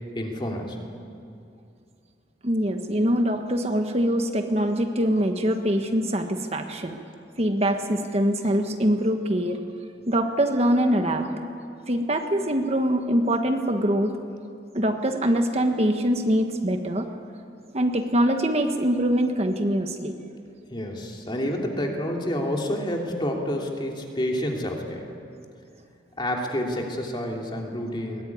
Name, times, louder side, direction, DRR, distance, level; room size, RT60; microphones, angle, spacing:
voice 1, 0.1-0.9 20.7-25.1 26.2-28.2, equal, 25° left, 0 dB, 2.9 m, -29 dB
voice 2, 2.4-7.0 7.4-9.6 10.1-11.3 11.9-14.2 14.7-17.1 17.7-20.1, equal, 35° right, 5 dB, 1.3 m, -23 dB
22.0 x 19.0 x 9.6 m, 2.4 s
head